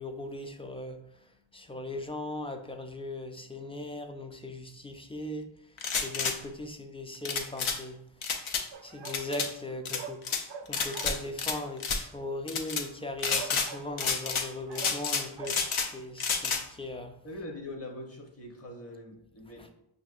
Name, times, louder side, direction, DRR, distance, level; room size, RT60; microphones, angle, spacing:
voice 1, 0.0-10.2 10.6-17.2 19.6-19.7, left 1 dB, 15° left, 5 dB, 0.3 m, -39 dB
sound 1, 5.8-6.4 7.2-7.8 8.2-8.6 9.0-9.5 9.8-10.4 10.7-11.5 11.8-12.0 12.5-12.8 13.2-13.7 14.0-14.5 14.7-15.9 16.2-16.6, left 5 dB, 75° left, 0.6 m, -30 dB
sound 2, 8.7-9.3 9.6-11.3 12.9-13.0 13.3-14.2 14.7-15.1 15.4-15.5, right 6 dB, 65° right, 0.5 m, -44 dB
voice 2, 17.2-19.7, left 1 dB, 30° left, 0 dB, 1.0 m, -42 dB
5.8 x 2.7 x 2.4 m, 0.81 s
wide cardioid pair, 60°, 50 cm